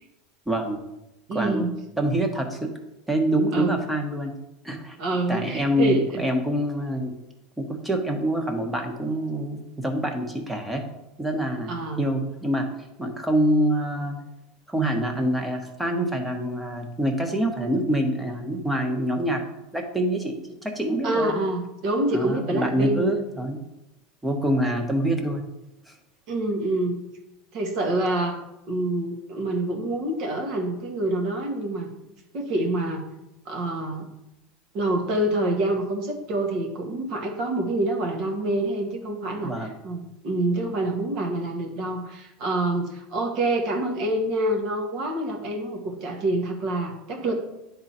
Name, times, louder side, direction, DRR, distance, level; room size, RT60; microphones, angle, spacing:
voice 1, 0.5-0.8 1.3-1.6 2.0-2.7 3.1-4.3 4.6-5.0 5.3-7.1 7.6-10.8 11.2-11.7 12.0-12.7 13.0-14.2 14.7-20.4 20.6-21.3 22.1-23.6 24.2-25.4 25.9-26.0 39.4-39.7, right 1 dB, 5° right, 4 dB, 1.2 m, -25 dB
voice 2, 1.3-1.7 3.5-3.8 5.0-6.2 11.7-12.0 21.0-23.1 26.3-27.0 27.5-28.4 28.7-31.9 32.3-33.0 33.5-34.1 34.7-47.3, right 1 dB, 55° right, 1 dB, 1.6 m, -26 dB
10.0 x 4.0 x 4.3 m, 0.91 s
supercardioid pair, 120°, 0 cm